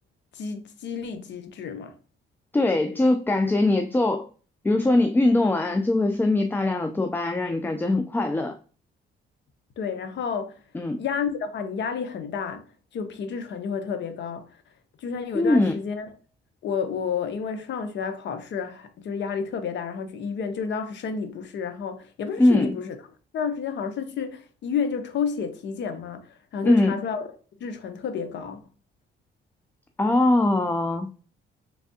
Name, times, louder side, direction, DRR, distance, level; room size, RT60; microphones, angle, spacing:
voice 1, 0.3-2.0 9.8-10.6 11.0-12.6 12.9-14.4 15.0-16.1 16.6-23.0 23.3-27.3 27.6-28.6, left 6 dB, 65° left, 0.7 m, -30 dB
voice 2, 2.5-4.3 4.6-8.5 10.7-11.0 15.3-15.7 22.4-22.7 26.6-27.0 30.0-31.1, left 2 dB, 10° left, 0.3 m, -21 dB
3.4 x 3.3 x 2.7 m
cardioid pair, 90°, 20 cm